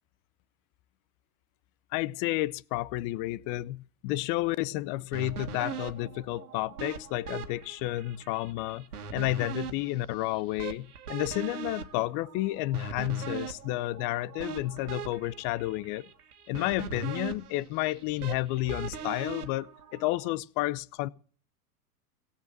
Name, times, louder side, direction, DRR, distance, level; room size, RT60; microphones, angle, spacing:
voice 1, 1.9-8.9 9.1-16.1 16.5-21.1, left 17 dB, 45° left, 0.8 m, -31 dB
sound 1, 5.1-20.4, right 7 dB, 85° right, 1.7 m, -41 dB
17.5 x 8.6 x 7.4 m
hypercardioid pair, 100°, 44 cm